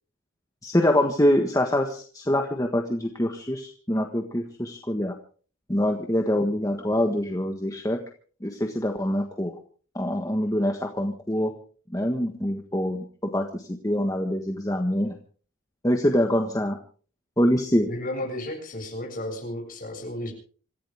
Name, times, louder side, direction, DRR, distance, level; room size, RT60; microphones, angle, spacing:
voice 1, 0.6-5.1 5.7-8.0 8.4-9.5 9.9-11.5 11.9-13.0 13.3-15.1 15.8-16.8 17.4-17.9, left 1 dB, 15° left, 3 dB, 1.5 m, -25 dB
voice 2, 17.8-20.3, left 1 dB, 40° left, 2 dB, 7.3 m, -33 dB
26.5 x 15.5 x 3.6 m, 0.42 s
head